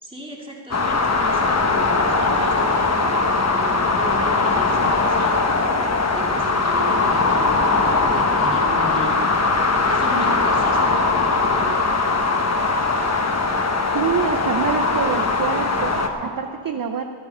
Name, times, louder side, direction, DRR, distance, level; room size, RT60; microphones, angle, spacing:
voice 1, 0.0-5.3 6.1-9.2 9.8-12.0, right 1 dB, 10° right, -2 dB, 2.4 m, -35 dB
sound 1, 0.7-16.1, left 3 dB, 30° left, 1.1 m, -20 dB
voice 2, 13.9-17.0, right 6 dB, 45° right, 6 dB, 0.6 m, -26 dB
13.5 x 12.5 x 5.5 m, 2.4 s
wide cardioid pair, 140°, 49 cm